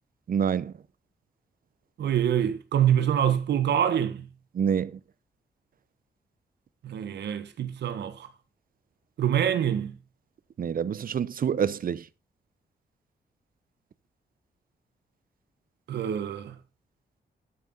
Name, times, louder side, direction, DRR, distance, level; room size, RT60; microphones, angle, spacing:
voice 1, 0.3-0.7 4.5-4.9 10.6-12.0, right 7 dB, 55° right, 0.7 m, -26 dB
voice 2, 2.0-4.2 6.8-8.3 9.2-9.9 15.9-16.5, right 9 dB, 90° right, 1.6 m, -25 dB
12.5 x 9.7 x 3.9 m
cardioid pair, 80°, 17 cm